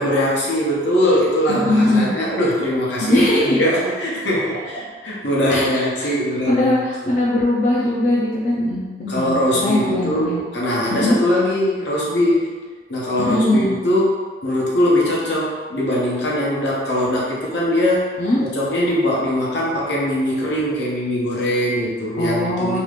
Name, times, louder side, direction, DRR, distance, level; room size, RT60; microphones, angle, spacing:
voice 1, 0.0-6.8 7.0-7.1 9.1-12.5 12.9-18.0 18.5-22.8, left 1 dB, 75° left, -5 dB, 0.8 m, -21 dB
voice 2, 1.5-2.1 3.0-3.6 5.5-6.1 6.4-10.4 10.9-11.2 13.2-13.7 18.2-18.4 22.2-22.8, left 1 dB, 45° left, -7 dB, 0.5 m, -20 dB
2.9 x 2.4 x 3.3 m, 1.4 s
head